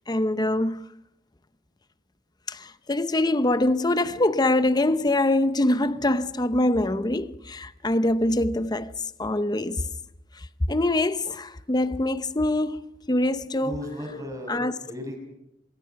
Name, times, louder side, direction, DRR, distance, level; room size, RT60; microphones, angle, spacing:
voice 1, 0.1-0.8 2.5-9.9 10.4-13.9 14.5-14.8, left 1 dB, 20° left, 0.7 m, -24 dB
voice 2, 13.6-15.2, left 1 dB, 20° right, 6.0 m, -36 dB
23.5 x 23.0 x 5.8 m
head